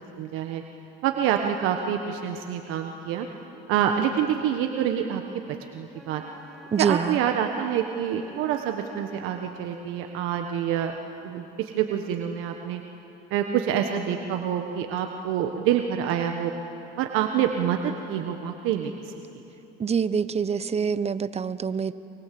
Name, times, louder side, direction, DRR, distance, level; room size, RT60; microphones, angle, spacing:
voice 1, 0.2-0.6 1.0-3.3 3.7-5.2 5.7-6.2 6.8-11.0 11.2-12.8 13.3-16.5 17.0-17.8 18.1-19.1, right 9 dB, 75° right, 4 dB, 1.4 m, -26 dB
Wind instrument woodwind instrument, 5.9-9.5, equal, ahead, 4.6 m, -48 dB
voice 2, 6.7-7.2 19.8-21.9, right 6 dB, 30° right, 14 dB, 0.9 m, -25 dB
25.0 x 24.0 x 7.8 m, 2.9 s
supercardioid pair, 85°, 21 cm